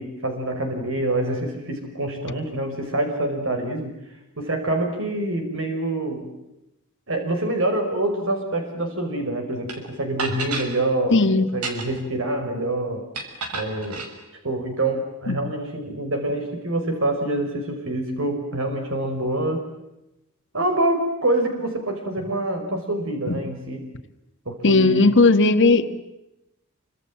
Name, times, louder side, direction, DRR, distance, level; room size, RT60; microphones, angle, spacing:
voice 1, 0.0-4.0 4.4-6.3 7.1-11.2 11.5-13.1 13.5-14.1 14.4-19.7 20.5-23.9 24.5-25.1, right 1 dB, 60° right, 4 dB, 5.6 m, -26 dB
sound 1, 9.7-9.8 10.2-10.7 11.5-12.1 13.1-14.1, right 3 dB, 90° right, 6.0 m, -30 dB
voice 2, 11.1-11.5 15.3-15.4 23.3-23.4 24.6-26.0, left 3 dB, 55° left, 8 dB, 1.8 m, -17 dB
29.0 x 26.0 x 7.5 m, 0.93 s
head